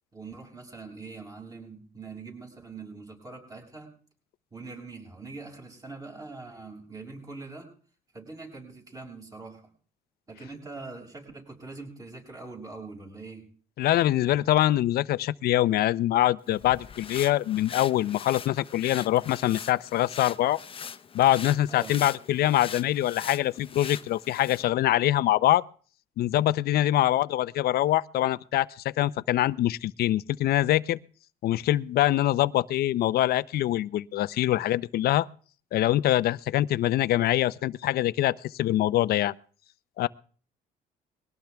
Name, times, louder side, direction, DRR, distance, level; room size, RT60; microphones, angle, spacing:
voice 1, 0.1-3.9 4.5-7.7 8.1-9.7 10.3-13.5 21.7-22.0, right 3 dB, 20° right, 6.5 m, -43 dB
voice 2, 13.8-20.6 21.1-25.6 26.2-31.0 31.4-35.3 35.7-39.3 40.0-40.1, left 14 dB, 65° left, 0.6 m, -24 dB
sound 1, 16.5-24.7, left 7 dB, 35° left, 0.9 m, -42 dB
21.5 x 18.0 x 3.5 m
cardioid pair, 110°, 17 cm